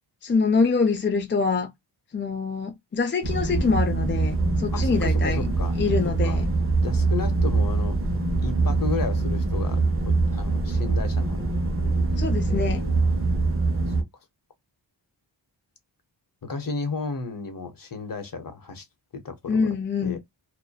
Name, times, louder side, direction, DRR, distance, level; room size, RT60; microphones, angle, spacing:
voice 1, 0.2-1.7 2.1-5.5 5.8-6.5 12.2-12.8 19.5-20.2, left 4 dB, 25° left, 0.4 m, -25 dB
sound 1, 3.2-14.0, right 3 dB, 30° right, 0.8 m, -24 dB
voice 2, 4.7-5.8 6.2-6.4 6.8-8.0 8.4-11.5 11.8-13.1 16.4-18.8 19.1-19.7 20.0-20.2, left 4 dB, 45° left, 0.9 m, -34 dB
2.6 x 2.1 x 2.2 m
wide cardioid pair, 70°, 47 cm